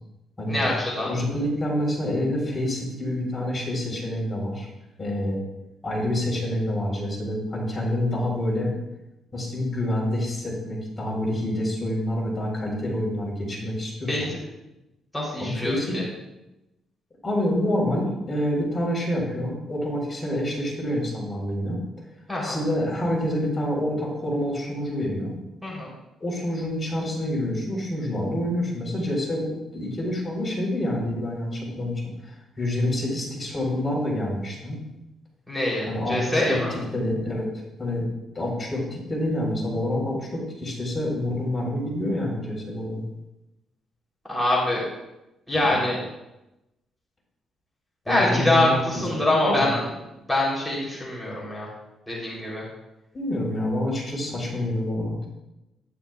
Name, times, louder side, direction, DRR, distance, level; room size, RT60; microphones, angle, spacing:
voice 1, 0.5-1.1 14.1-14.2 15.1-16.0 22.3-22.5 25.6-25.9 35.5-36.7 44.3-44.8 45.5-46.0 48.1-49.8 50.3-51.7 52.1-52.6, left 1 dB, 5° left, -5 dB, 3.1 m, -24 dB
voice 2, 1.0-4.7 5.0-5.4 5.8-8.7 9.3-14.3 15.4-15.9 17.2-21.8 22.4-25.3 26.2-34.8 35.9-37.5 37.8-38.0 38.3-43.0 45.5-45.8 48.1-49.7 53.1-55.2, left 1 dB, 25° left, -2 dB, 3.7 m, -27 dB
11.5 x 10.5 x 2.3 m, 0.94 s
cardioid pair, 90°, 0 cm